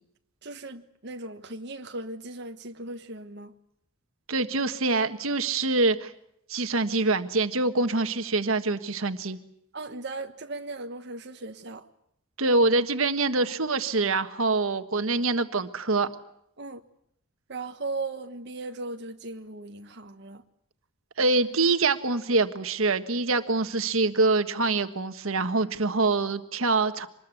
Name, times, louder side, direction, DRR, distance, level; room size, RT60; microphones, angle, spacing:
voice 1, 0.4-3.5 9.7-11.8 16.6-16.8 17.5-20.4, right 2 dB, 55° right, 1.4 m, -37 dB
voice 2, 4.3-6.1 6.5-9.4 12.4-16.1 21.2-27.1, right 3 dB, 80° right, 1.5 m, -25 dB
25.5 x 21.0 x 8.3 m
head